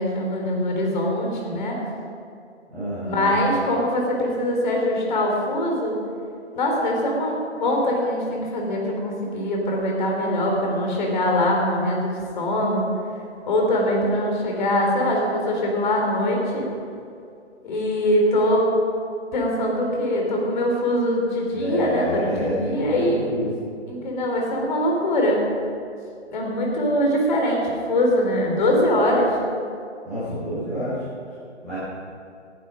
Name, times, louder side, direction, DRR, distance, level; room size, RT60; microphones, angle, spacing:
voice 1, 0.0-1.8 3.0-6.0 6.5-12.9 13.5-16.7 17.6-18.7 19.3-23.2 23.9-25.4 26.3-29.4, left 1 dB, 40° left, 0 dB, 4.0 m, -22 dB
voice 2, 2.7-3.3 21.5-23.5 30.0-31.0 31.6-31.8, equal, ahead, -27 dB, 0.4 m, -28 dB
19.5 x 11.0 x 5.2 m, 2.4 s
figure-of-eight pair, 150°, 36 cm